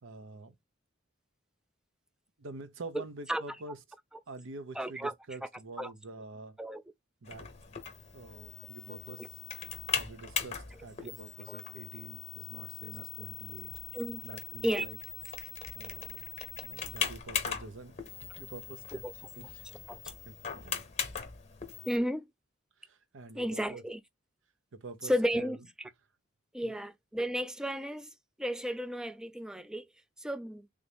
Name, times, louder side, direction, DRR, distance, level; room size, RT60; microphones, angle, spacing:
voice 1, 0.0-0.5 2.4-3.8 4.3-6.6 7.2-7.5 8.1-9.2 9.9-13.7 14.2-15.0 15.7-16.3 16.6-18.0 18.4-19.0 19.4-19.6 20.6-20.8 22.8-23.8 24.7-25.5 26.6-26.8, right 3 dB, 70° right, 0.7 m, -46 dB
voice 2, 3.3-3.8 4.7-5.1 5.4-5.5 5.8-5.9 6.6-6.8 9.2-9.3 10.7-11.1 13.9-14.2 14.6-14.9 18.9-19.1 19.9-20.0 21.8-22.3 23.3-24.0 25.0-25.9 26.5-28.1 28.4-29.9 30.2-30.7, equal, 5° right, 0.3 m, -33 dB
sound 1, 7.3-22.0, left 7 dB, 35° left, 0.9 m, -40 dB
3.4 x 2.6 x 3.4 m
head